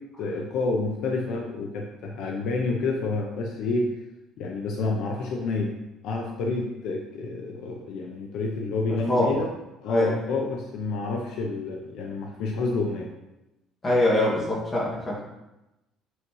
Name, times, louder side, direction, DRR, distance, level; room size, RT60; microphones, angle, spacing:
voice 1, 0.2-3.9 4.4-5.7 6.0-9.5 9.8-13.1, left 3 dB, 60° left, 1 dB, 0.7 m, -29 dB
voice 2, 8.9-9.4 9.9-10.2 13.8-15.2, left 1 dB, 15° left, -5 dB, 1.9 m, -24 dB
6.3 x 6.0 x 3.1 m, 0.96 s
cardioid pair, 175°, 0 cm